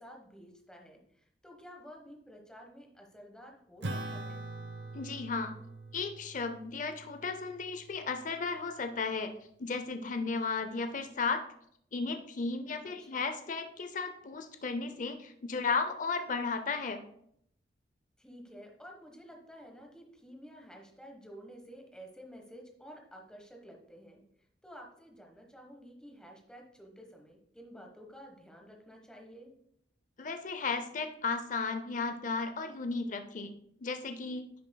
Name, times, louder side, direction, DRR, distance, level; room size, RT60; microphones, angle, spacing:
voice 1, 0.0-4.5 12.8-13.3 18.2-24.2 24.6-29.5, equal, 5° left, 1 dB, 1.2 m, -51 dB
Acoustic guitar / Strum, 3.8-8.6, right 2 dB, 80° right, 0.8 m, -43 dB
voice 2, 4.9-5.5 5.9-9.3 9.6-11.4 11.9-17.0 30.2-33.5 33.8-34.5, left 4 dB, 45° left, 7 dB, 0.6 m, -34 dB
10.0 x 7.3 x 2.2 m, 0.71 s
head